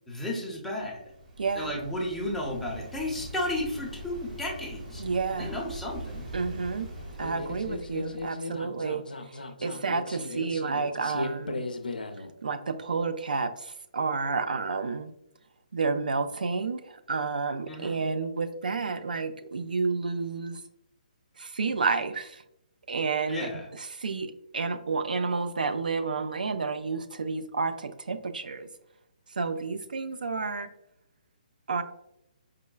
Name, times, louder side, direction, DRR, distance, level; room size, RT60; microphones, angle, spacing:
voice 1, 0.1-1.0 1.5-5.0 5.4-6.3 17.7-18.0 23.3-23.7, left 1 dB, ahead, -4 dB, 0.7 m, -33 dB
Waves surf, 0.7-8.3, right 1 dB, 55° right, 1.0 m, -43 dB
voice 2, 1.4-1.7 5.0-5.5 6.3-6.9 7.2-11.6 12.4-15.1 15.7-20.6 21.4-22.4 22.9-23.5 24.0-28.7 29.4-30.7 31.7-31.8, right 4 dB, 75° right, 9 dB, 0.3 m, -30 dB
sound 1, 7.2-12.3, left 2 dB, 85° left, 0.4 m, -36 dB
4.7 x 2.2 x 2.2 m, 0.80 s
figure-of-eight pair, 135°, 5 cm